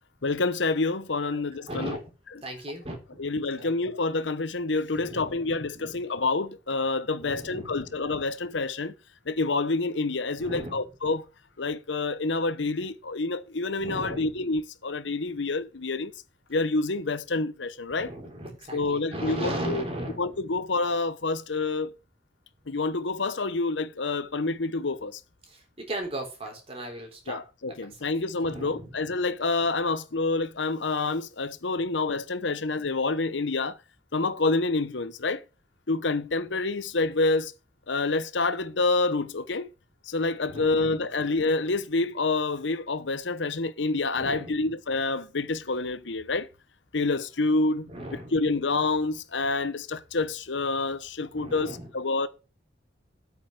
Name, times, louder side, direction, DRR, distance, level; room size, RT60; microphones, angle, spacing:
voice 1, 0.2-2.0 3.2-8.9 9.3-11.2 11.6-16.1 16.5-18.1 18.7-19.8 20.2-21.9 22.7-25.2 27.3-33.8 34.1-35.4 35.9-37.5 37.9-39.7 40.1-46.5 46.9-47.9 48.3-52.3, left 3 dB, 85° left, 1.0 m, -27 dB
voice 2, 1.3-2.0 2.4-3.2 3.6-3.7 4.9-6.0 7.2-8.0 10.4-10.9 13.8-14.4 17.9-20.4 25.4-27.4 27.8-28.1 28.4-29.0 40.5-41.0 44.1-44.7 47.9-48.5 51.3-51.9, right 1 dB, 30° right, 3.6 m, -37 dB
8.8 x 5.6 x 7.3 m
head